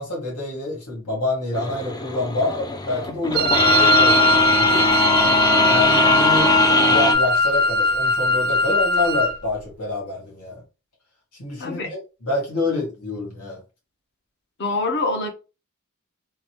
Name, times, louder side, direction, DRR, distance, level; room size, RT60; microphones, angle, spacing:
voice 1, 0.0-4.9 5.7-10.6 11.4-13.6, left 2 dB, 90° left, 1.8 m, -27 dB
sound 1, 1.5-7.1, left 2 dB, 15° left, 0.4 m, -21 dB
Wind instrument woodwind instrument, 3.3-9.4, left 1 dB, 45° right, 0.4 m, -19 dB
voice 2, 14.6-15.3, left 2 dB, 50° left, 0.8 m, -24 dB
3.9 x 2.1 x 3.1 m
head